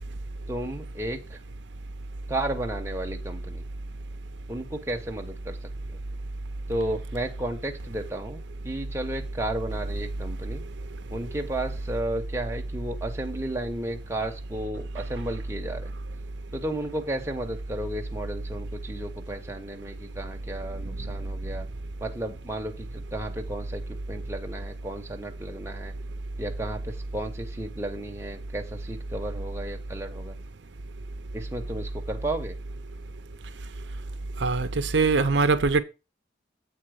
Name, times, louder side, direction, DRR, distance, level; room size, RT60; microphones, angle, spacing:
voice 1, 0.5-1.4 2.3-3.6 4.5-5.6 5.9-6.0 6.7-10.6 11.1-15.9 16.5-21.7 22.0-25.9 26.4-30.4 31.3-32.6, right 1 dB, 15° right, 1.0 m, -33 dB
voice 2, 34.4-35.8, right 4 dB, 70° right, 0.6 m, -22 dB
8.0 x 4.2 x 6.4 m
head